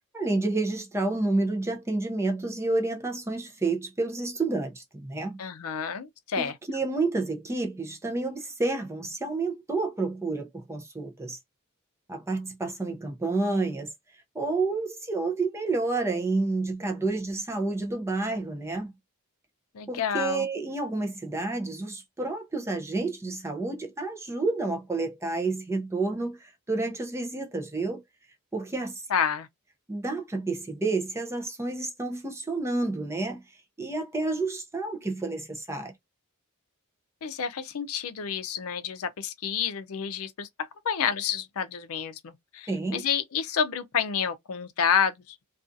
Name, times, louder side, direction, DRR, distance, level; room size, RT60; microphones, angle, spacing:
voice 1, 0.1-5.4 6.4-11.4 12.1-13.9 14.3-18.9 19.9-28.0 28.5-29.0 29.9-33.4 33.8-35.9 42.7-43.0, right 3 dB, 10° right, 0.5 m, -29 dB
voice 2, 5.4-6.5 19.7-20.5 29.1-29.5 37.2-45.4, left 7 dB, 70° left, 0.5 m, -29 dB
2.5 x 2.3 x 2.6 m
head